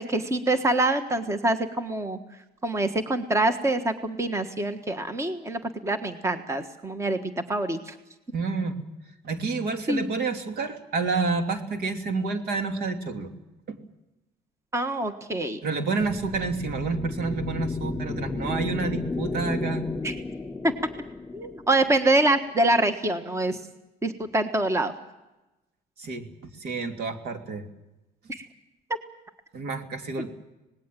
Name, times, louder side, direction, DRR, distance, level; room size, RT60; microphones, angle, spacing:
voice 1, 0.0-2.2 2.6-7.9 9.9-10.1 14.7-15.6 20.0-20.2 20.6-20.7 21.3-23.6 24.0-24.9 28.3-28.4, right 2 dB, 15° right, 8 dB, 1.5 m, -25 dB
voice 2, 8.3-8.7 9.2-13.3 13.7-13.8 15.6-19.9 26.0-27.6 29.5-30.3, right 4 dB, 70° right, 6 dB, 2.9 m, -29 dB
sound 1, 16.0-22.5, left 3 dB, 10° left, 3.1 m, -34 dB
26.0 x 19.5 x 7.6 m, 1.0 s
cardioid pair, 110°, 17 cm